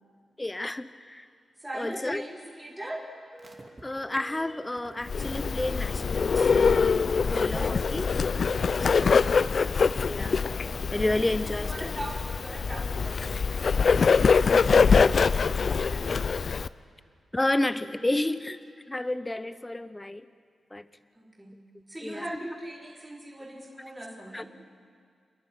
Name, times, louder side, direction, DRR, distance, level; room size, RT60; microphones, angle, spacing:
voice 1, 0.4-1.3 1.7-2.3 3.8-8.1 8.8-9.7 10.1-10.4 10.9-11.9 17.3-18.6 18.9-20.3 20.7-20.9 22.0-22.3 24.3-24.4, left 1 dB, 15° left, 13 dB, 0.8 m, -31 dB
voice 2, 1.6-3.1 7.5-7.9 11.5-16.5 21.1-21.6 21.9-24.5, right 1 dB, 10° right, -4 dB, 4.2 m, -41 dB
sound 1, 3.3-14.7, right 2 dB, 25° right, 2.8 m, -48 dB
Bird, 5.1-16.7, left 5 dB, 60° left, 0.4 m, -24 dB
28.0 x 11.0 x 10.0 m, 2.2 s
cardioid pair, 75°, 0 cm